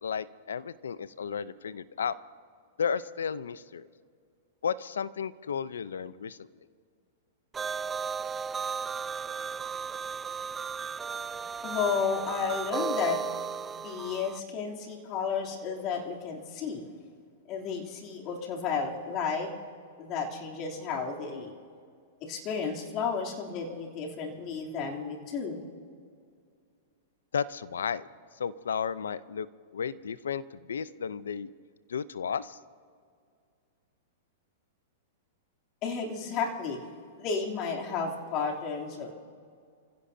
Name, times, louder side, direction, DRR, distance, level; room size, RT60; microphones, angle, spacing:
voice 1, 0.0-2.1 2.8-3.9 4.6-6.5 27.3-28.1 28.4-29.5 29.7-31.5 31.9-32.6, left 7 dB, 90° left, 16 dB, 0.6 m, -33 dB
sound 1, 7.5-14.4, right 6 dB, 15° right, 0.4 m, -35 dB
voice 2, 11.6-13.2 13.7-16.9 17.5-19.5 20.0-21.5 22.2-25.6 35.8-36.8 37.2-39.1, left 5 dB, 40° left, -1 dB, 3.1 m, -32 dB
28.5 x 16.0 x 2.8 m, 2.2 s
hypercardioid pair, 125°, 0 cm